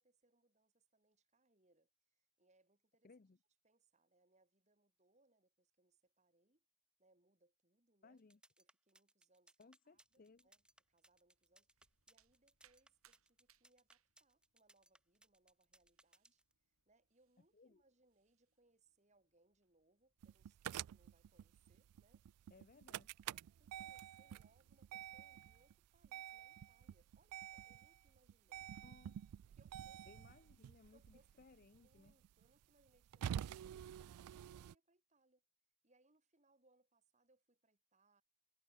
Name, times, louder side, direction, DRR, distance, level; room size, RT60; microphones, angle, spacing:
voice 1, 0.0-3.1 3.6-6.7 7.0-8.2 8.6-22.6 23.3-28.7 29.5-30.3 30.9-31.3 31.8-35.4 35.8-38.2, right 2 dB, 30° right, 2.7 m, -76 dB
voice 2, 3.0-3.4 8.0-8.4 9.6-10.5 17.5-17.8 22.5-23.1 28.8-29.2 30.1-32.1, left 3 dB, 40° left, 0.5 m, -64 dB
sound 1, 8.2-16.5, right 1 dB, 5° right, 2.0 m, -69 dB
sound 2, 9.9-28.8, right 9 dB, 70° right, 4.0 m, -80 dB
sound 3, 20.2-34.8, right 10 dB, 90° right, 0.3 m, -49 dB
head